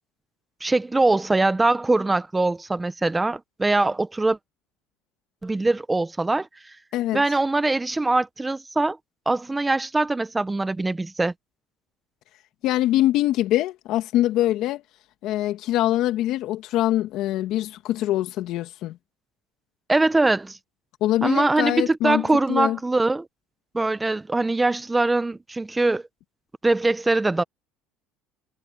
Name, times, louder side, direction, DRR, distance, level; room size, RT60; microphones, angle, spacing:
voice 1, 0.6-4.4 5.4-6.5 7.1-9.0 9.3-11.3 19.9-20.6 21.2-23.3 23.7-26.0 26.6-27.4, right 2 dB, 10° right, 0.8 m, -22 dB
voice 2, 12.6-14.8 15.2-19.0 21.0-22.8, left 14 dB, 60° left, 2.4 m, -23 dB
cardioid pair, 125°, 0 cm